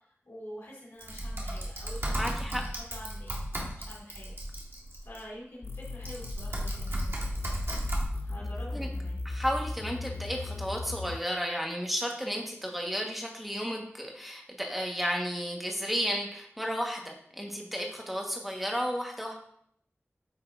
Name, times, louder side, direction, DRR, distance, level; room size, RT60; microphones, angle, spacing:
voice 1, 0.3-4.3 5.0-7.4 8.2-9.2, equal, 80° left, -7 dB, 2.6 m, -47 dB
Typing, 1.0-5.2 5.8-8.0, right 1 dB, 60° right, 1.7 m, -34 dB
voice 2, 2.2-2.6 8.4-8.5 8.7-8.9 9.2-19.3, equal, 5° right, 1 dB, 1.5 m, -33 dB
sound 1, 5.6-11.2, left 2 dB, 60° left, 0.5 m, -37 dB
8.9 x 5.6 x 2.7 m, 0.68 s
wide cardioid pair, 50°, 5 cm